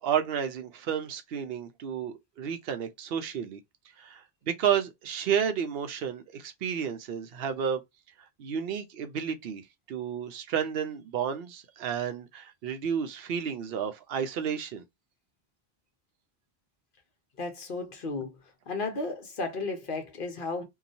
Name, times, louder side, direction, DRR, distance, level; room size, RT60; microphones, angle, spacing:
voice 1, 0.0-3.6 4.0-7.8 8.4-14.8, right 8 dB, 70° right, 0.8 m, -31 dB
voice 2, 17.4-18.4 18.7-20.6, left 3 dB, 60° left, 1.0 m, -34 dB
2.8 x 2.3 x 2.5 m
omnidirectional pair, 1.0 m